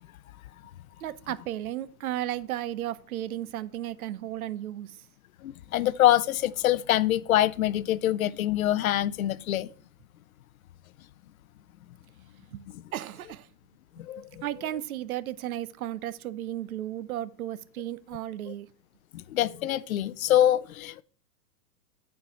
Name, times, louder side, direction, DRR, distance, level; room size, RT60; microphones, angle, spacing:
voice 1, 1.0-5.0 12.5-12.6 12.9-13.5 14.2-18.7, right 13 dB, 60° right, 0.6 m, -34 dB
voice 2, 5.4-9.7 12.7-12.8 14.0-14.3 19.1-21.0, left 13 dB, 60° left, 0.5 m, -25 dB
8.6 x 4.7 x 5.4 m
hypercardioid pair, 170°, 49 cm